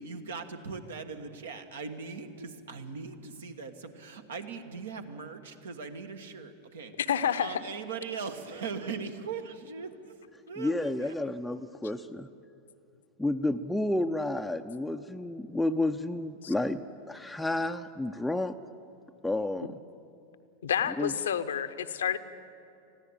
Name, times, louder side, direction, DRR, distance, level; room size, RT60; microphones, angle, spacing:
voice 1, 0.0-6.9 7.4-10.1 10.5-11.1, right 5 dB, 70° right, 7 dB, 1.4 m, -40 dB
voice 2, 7.0-7.6 16.4-16.5 20.6-22.2, left 8 dB, 70° left, 12 dB, 0.8 m, -29 dB
voice 3, 10.6-12.3 13.2-18.5 19.2-19.8 21.0-21.1, left 1 dB, 5° left, 4 dB, 0.5 m, -31 dB
20.5 x 14.5 x 8.7 m, 2.7 s
figure-of-eight pair, 90°, 0 cm